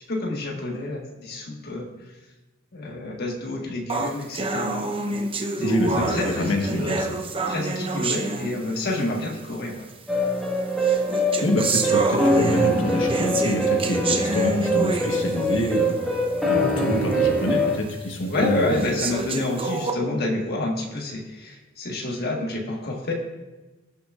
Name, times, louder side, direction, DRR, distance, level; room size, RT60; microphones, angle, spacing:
voice 1, 0.1-2.1 2.7-5.2 5.6-7.0 7.5-9.9 18.3-23.1, left 2 dB, 55° left, 0 dB, 1.5 m, -29 dB
sound 1, 3.9-9.0 9.9-10.0 10.8-16.1 16.5-16.6 17.1-17.2 17.9-18.0 18.7-19.9, right 2 dB, 30° right, 0.8 m, -28 dB
voice 2, 5.6-7.1 11.4-19.0, left 1 dB, 85° left, 1 dB, 1.3 m, -26 dB
sound 2, 10.1-17.8, right 1 dB, ahead, 1.5 m, -23 dB
19.0 x 6.9 x 2.5 m, 1.1 s
head